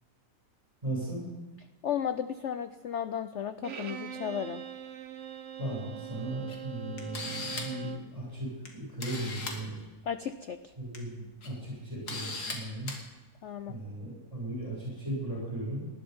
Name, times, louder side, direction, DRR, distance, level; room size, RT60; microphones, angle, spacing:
voice 1, 0.8-1.3 5.6-8.5 8.7-9.8 10.8-12.9 13.7-15.9, right 1 dB, 20° right, -5 dB, 7.3 m, -37 dB
voice 2, 1.8-4.6 10.1-10.7 13.4-13.7, left 8 dB, 80° left, 11 dB, 0.6 m, -34 dB
Bowed string instrument, 3.6-8.1, right 11 dB, 50° right, 1.0 m, -42 dB
Camera, 6.5-6.6 7.0-7.8 8.6-8.7 9.0-9.6 10.7-11.0 11.4-11.5 12.1-12.5 12.9-13.0, left 3 dB, 60° left, 2.6 m, -37 dB
19.0 x 11.5 x 5.4 m, 1.3 s
omnidirectional pair, 1.9 m